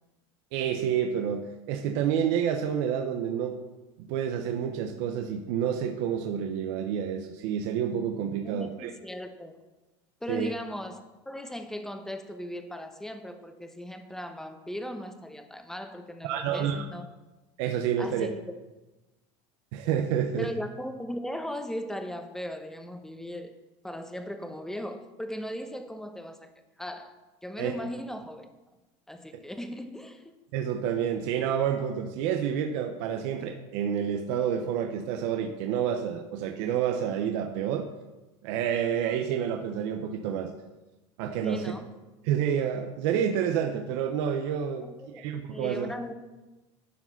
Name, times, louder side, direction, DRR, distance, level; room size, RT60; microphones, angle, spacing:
voice 1, 0.5-3.6 4.0-8.9 10.3-10.5 16.2-16.8 17.6-18.3 19.7-20.5 27.6-27.7 30.5-37.9 38.4-40.5 41.2-41.7 42.2-44.9 45.1-45.9, right 8 dB, 70° right, 5 dB, 0.8 m, -29 dB
voice 2, 8.4-9.6 10.2-17.1 18.0-18.5 20.4-23.5 23.8-26.5 26.8-27.1 27.4-28.5 29.1-30.3 41.4-41.9 44.8-45.3 45.5-46.1, equal, 5° left, 7 dB, 0.9 m, -38 dB
12.0 x 4.9 x 5.8 m, 1.1 s
supercardioid pair, 120°, 15 cm